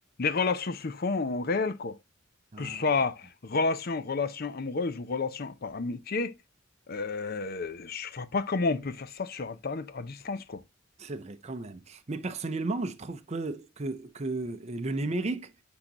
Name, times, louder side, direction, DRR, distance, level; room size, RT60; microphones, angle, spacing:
voice 1, 0.2-2.0 2.6-6.4 6.9-10.6, left 4 dB, 50° left, 0.6 m, -30 dB
voice 2, 2.5-2.8 11.0-15.5, right 2 dB, 35° right, 0.6 m, -34 dB
9.7 x 3.9 x 2.9 m
head